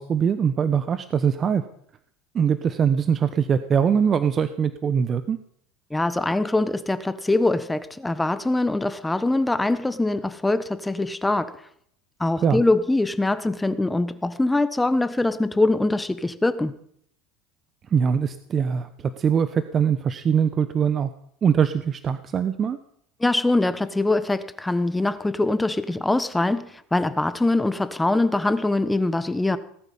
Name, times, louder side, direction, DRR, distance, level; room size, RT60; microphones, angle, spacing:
voice 1, 0.0-1.6 2.3-5.4 12.4-12.6 17.9-21.1 21.4-22.8, right 7 dB, 35° right, 11 dB, 1.0 m, -22 dB
voice 2, 5.9-11.5 12.2-16.7 23.2-26.7 26.9-29.6, left 2 dB, 10° left, 13 dB, 1.2 m, -23 dB
19.5 x 12.0 x 5.6 m, 0.66 s
supercardioid pair, 115°, 0 cm